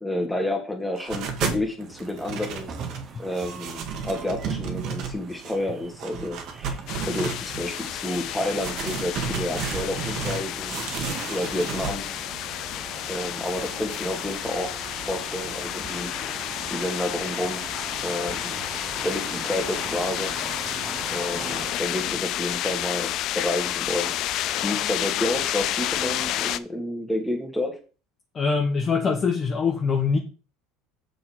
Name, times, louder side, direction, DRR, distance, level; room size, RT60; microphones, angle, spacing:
voice 1, 0.0-2.7 3.2-6.8 7.0-12.0 13.1-14.7 15.1-16.1 16.7-17.6 18.0-18.6 19.0-20.3 21.1-24.1 24.6-27.8, left 1 dB, 5° left, 2.1 m, -30 dB
sound 1, 1.0-1.7 2.0-3.1 3.3-5.5 6.0-7.9 8.4-10.4 10.7-11.9, right 6 dB, 50° right, 1.7 m, -32 dB
sound 2, 1.8-21.7, right 5 dB, 30° right, 1.2 m, -41 dB
sound 3, 6.9-26.6, left 13 dB, 50° left, 0.5 m, -30 dB
voice 2, 28.3-30.2, left 5 dB, 25° left, 1.1 m, -23 dB
6.7 x 6.5 x 4.5 m
supercardioid pair, 135°, 0 cm